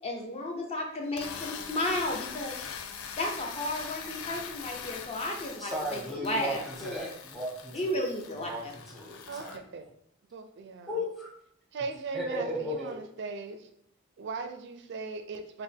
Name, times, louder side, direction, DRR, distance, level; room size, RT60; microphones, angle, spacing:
voice 1, 0.0-2.6 3.2-7.1 7.7-8.7, left 1 dB, 30° left, 1 dB, 0.7 m, -33 dB
sound 1, 1.0-9.6, left 7 dB, 90° left, 0.4 m, -42 dB
voice 2, 5.6-8.0 8.4-9.6 10.9-11.3 12.1-13.0, equal, ahead, -3 dB, 0.8 m, -36 dB
voice 3, 9.3-9.9 10.3-11.0 11.7-13.7 14.2-15.6, right 4 dB, 55° right, 7 dB, 0.4 m, -39 dB
4.2 x 2.1 x 3.5 m, 0.71 s
head